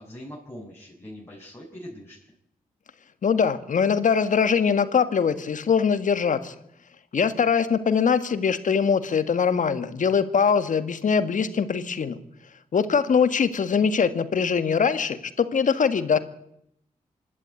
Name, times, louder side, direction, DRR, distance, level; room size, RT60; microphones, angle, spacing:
voice 1, 0.0-2.3, equal, 15° left, -4 dB, 6.7 m, -42 dB
voice 2, 3.2-6.5 7.1-12.2 12.7-16.2, left 6 dB, 60° left, 11 dB, 1.8 m, -22 dB
25.5 x 12.0 x 9.3 m, 0.75 s
supercardioid pair, 45°, 15 cm